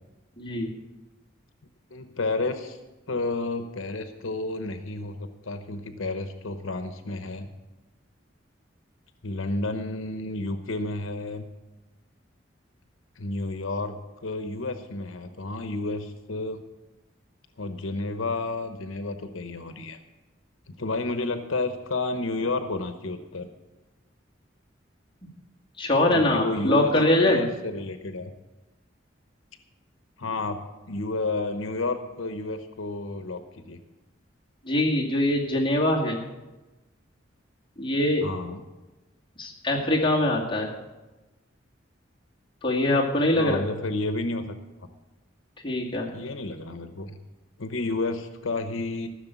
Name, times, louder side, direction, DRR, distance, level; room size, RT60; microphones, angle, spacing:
voice 1, 0.4-0.7 25.8-27.4 34.6-36.2 37.8-38.3 39.4-40.7 42.6-43.6 45.6-46.1, left 1 dB, 25° left, -3 dB, 2.2 m, -23 dB
voice 2, 1.9-2.8 3.1-7.5 9.2-11.4 13.2-16.6 17.6-20.0 20.7-23.5 26.1-26.9 27.2-28.3 30.2-30.6 30.9-33.8 38.2-38.6 43.3-44.5 46.1-47.2 47.6-49.1, left 2 dB, 85° left, 8 dB, 0.9 m, -31 dB
15.0 x 6.6 x 8.2 m, 1.1 s
head